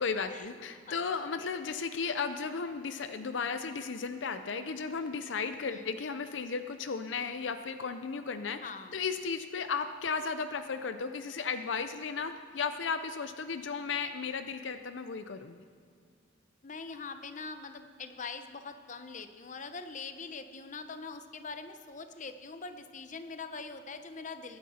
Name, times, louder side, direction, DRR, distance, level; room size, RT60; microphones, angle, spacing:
voice 1, 0.0-8.6 8.9-15.6, left 5 dB, 75° left, 9 dB, 0.6 m, -35 dB
voice 2, 8.6-8.9 16.6-24.6, left 4 dB, 40° left, 9 dB, 0.7 m, -43 dB
22.0 x 9.4 x 4.3 m, 2.2 s
head